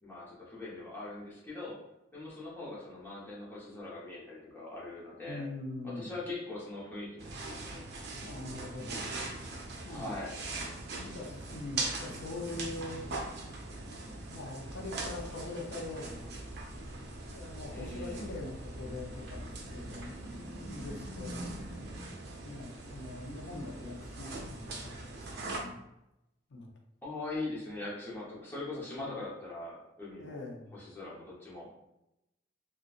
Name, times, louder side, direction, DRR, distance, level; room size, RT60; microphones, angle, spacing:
voice 1, 0.0-1.8 2.1-5.5 5.8-7.8 9.8-10.3 17.7-18.3 27.0-30.4 30.7-31.7, left 2 dB, 10° left, -7 dB, 1.0 m, -41 dB
voice 2, 5.3-6.1 8.2-9.1 9.8-10.2 11.0-13.1 14.3-16.3 17.3-21.4 22.4-24.9 25.4-25.8 26.5-26.7 29.0-29.1 30.2-30.7, left 2 dB, 65° left, 0 dB, 0.7 m, -43 dB
sound 1, 7.2-25.6, right 2 dB, 60° right, 0.6 m, -41 dB
sound 2, 16.1-22.1, equal, 15° right, 1.0 m, -47 dB
3.8 x 2.3 x 2.5 m, 0.89 s
head